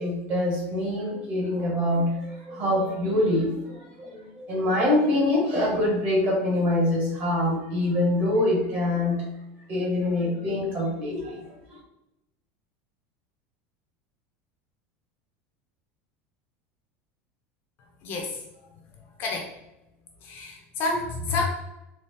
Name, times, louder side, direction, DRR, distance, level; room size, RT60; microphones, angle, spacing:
voice 1, 0.0-9.2 9.7-11.8, left 1 dB, 30° right, -4 dB, 1.4 m, -25 dB
voice 2, 18.0-18.4 19.2-19.5 20.2-21.4, left 3 dB, 35° left, 1 dB, 0.5 m, -29 dB
3.9 x 2.4 x 3.3 m, 0.91 s
cardioid pair, 170°, 6 cm